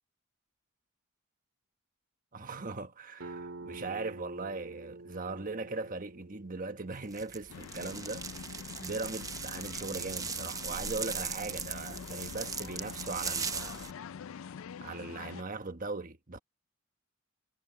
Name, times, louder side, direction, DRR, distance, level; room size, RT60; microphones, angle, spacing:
voice 1, 2.3-8.3 8.8-13.9 14.8-16.4, right 3 dB, 40° right, 1.3 m, -39 dB
sound 1, 3.2-8.6, right 3 dB, 80° right, 2.8 m, -48 dB
sound 2, 7.1-13.9, right 5 dB, 15° right, 0.7 m, -39 dB
sound 3, 7.5-15.4, left 7 dB, 80° left, 0.4 m, -45 dB
head